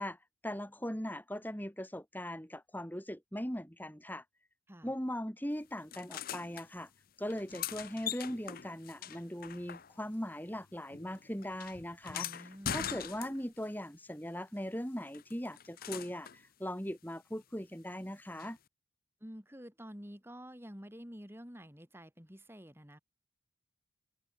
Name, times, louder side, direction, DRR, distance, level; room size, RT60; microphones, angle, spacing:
voice 1, 0.0-4.2 4.8-6.9 7.2-18.6, equal, 10° left, 3.6 m, -40 dB
sound 1, 5.9-6.7 7.3-10.2 10.5-13.7 15.1-16.4 18.4-18.5, left 9 dB, 45° left, 0.7 m, -42 dB
voice 2, 12.1-12.8 19.2-23.0, equal, 10° right, 4.2 m, -49 dB
head